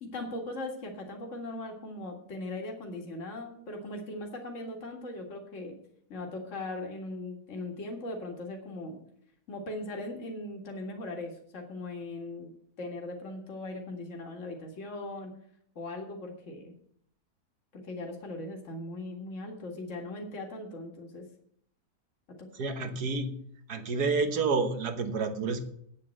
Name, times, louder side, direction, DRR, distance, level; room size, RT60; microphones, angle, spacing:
voice 1, 0.0-5.8 6.1-9.0 9.5-12.5 12.8-15.3 15.8-16.7 17.7-21.2, left 2 dB, 50° left, 1 dB, 2.2 m, -39 dB
voice 2, 22.5-23.4 23.7-25.6, right 4 dB, 80° right, 7 dB, 1.8 m, -29 dB
9.0 x 7.7 x 7.5 m, 0.67 s
omnidirectional pair, 1.7 m